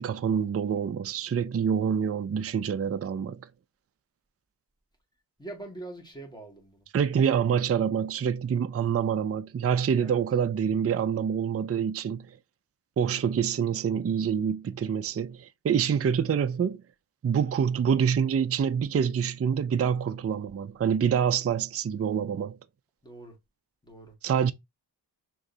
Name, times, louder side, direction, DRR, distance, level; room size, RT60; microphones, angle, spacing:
voice 1, 0.0-3.4 6.9-12.4 13.0-16.8 17.2-22.6 24.2-24.5, right 7 dB, 35° right, 0.4 m, -26 dB
voice 2, 5.4-6.9 10.0-10.2 23.0-23.4 23.8-24.1, right 2 dB, 10° left, 1.8 m, -43 dB
6.2 x 3.1 x 2.7 m
wide cardioid pair, 50°, 43 cm